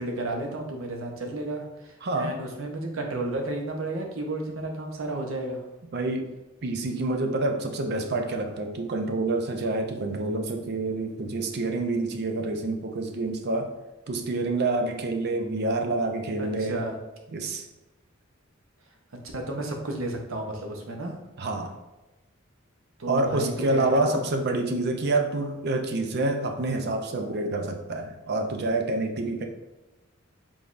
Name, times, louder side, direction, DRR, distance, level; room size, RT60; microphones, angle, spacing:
voice 1, 0.0-5.6 16.4-17.0 19.1-21.1 23.0-24.2, right 2 dB, 80° right, 2 dB, 0.8 m, -32 dB
voice 2, 2.0-2.4 5.9-6.3 6.6-13.7 14.1-16.8 17.3-17.6 21.4-21.7 23.1-29.4, right 2 dB, 55° right, 5 dB, 0.5 m, -27 dB
5.1 x 3.5 x 2.5 m, 1.0 s
head